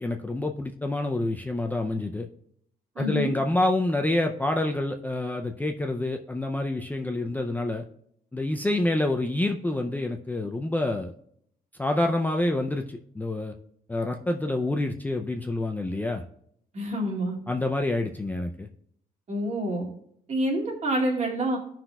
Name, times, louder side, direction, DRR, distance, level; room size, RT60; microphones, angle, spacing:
voice 1, 0.0-2.3 3.0-7.8 8.3-11.1 11.8-13.5 13.9-16.2 17.5-18.7, left 2 dB, 10° left, 3 dB, 0.4 m, -27 dB
voice 2, 3.0-3.3 16.7-17.4 19.3-19.8 20.3-21.6, right 1 dB, 45° right, -2 dB, 2.2 m, -27 dB
16.0 x 5.8 x 2.2 m, 0.70 s
cardioid pair, 135°, 16 cm